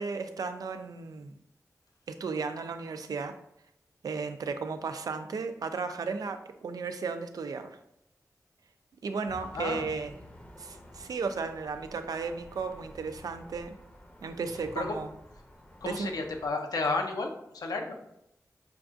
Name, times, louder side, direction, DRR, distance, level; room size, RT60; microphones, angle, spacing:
voice 1, 0.0-1.4 2.2-3.3 4.0-7.8 9.0-10.1 10.6-13.7 14.2-15.1 15.8-16.1, right 4 dB, 80° right, 8 dB, 0.4 m, -34 dB
sound 1, 9.3-16.5, left 1 dB, 20° left, 0.6 m, -51 dB
voice 2, 9.5-9.9 14.8-15.0 15.8-18.0, left 3 dB, 85° left, 4 dB, 0.6 m, -32 dB
5.8 x 2.3 x 2.5 m, 0.77 s
wide cardioid pair, 85°, 6 cm